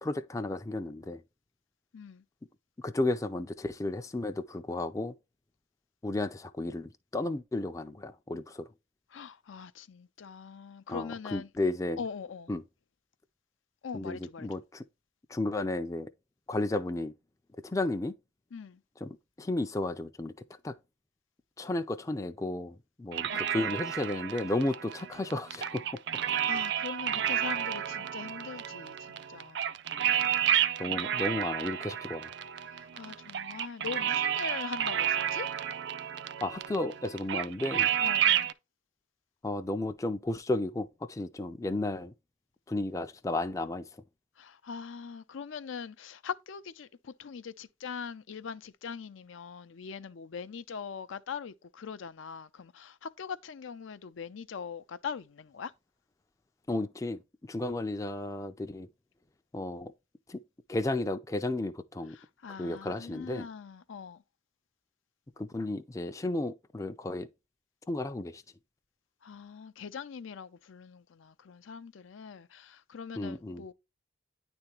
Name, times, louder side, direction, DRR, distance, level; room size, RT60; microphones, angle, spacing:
voice 1, 0.0-1.2 2.8-5.1 6.0-8.7 10.9-12.0 12.5-12.6 13.9-14.8 15.3-16.1 16.5-17.1 17.6-18.1 19.0-20.3 20.6-20.7 21.6-25.8 26.3-26.5 30.8-32.3 36.4-37.9 39.4-42.1 42.7-43.8 56.7-57.2 57.5-58.9 59.5-59.9 60.3-60.4 60.7-62.2 62.6-63.5 65.4-67.3 67.9-68.4 73.1-73.6, left 2 dB, 15° left, 0.4 m, -33 dB
voice 2, 9.1-11.5 12.0-12.5 13.8-14.5 18.5-18.8 23.3-23.5 26.4-29.8 32.7-35.5 38.0-38.5 44.4-55.7 62.1-64.2 69.2-73.7, left 6 dB, 75° left, 0.5 m, -42 dB
sound 1, 23.1-38.5, right 10 dB, 60° right, 0.5 m, -31 dB
9.7 x 3.5 x 2.9 m
head